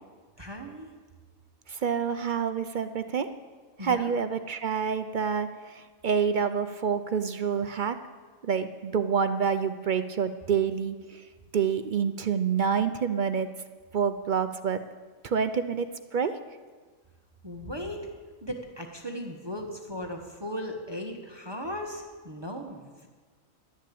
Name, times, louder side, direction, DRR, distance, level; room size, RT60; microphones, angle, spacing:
voice 1, 0.4-0.9 3.8-4.2 17.4-18.0 18.4-23.1, equal, 20° right, 2 dB, 1.2 m, -37 dB
voice 2, 1.7-3.3 3.8-5.5 6.0-8.0 8.4-11.0 11.5-13.5 13.9-14.8 15.2-15.9 16.1-16.3, right 6 dB, 55° right, 10 dB, 0.5 m, -27 dB
12.0 x 10.0 x 8.5 m, 1.5 s
omnidirectional pair, 1.4 m